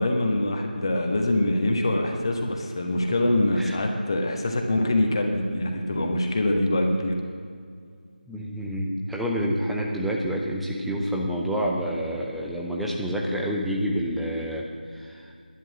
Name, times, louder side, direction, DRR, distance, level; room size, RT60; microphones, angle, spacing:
voice 1, 0.0-7.2, left 1 dB, 30° left, 3 dB, 1.3 m, -24 dB
voice 2, 8.3-15.3, equal, ahead, -3 dB, 0.5 m, -28 dB
11.0 x 10.5 x 7.5 m, 2.2 s
figure-of-eight pair, 165°, 5 cm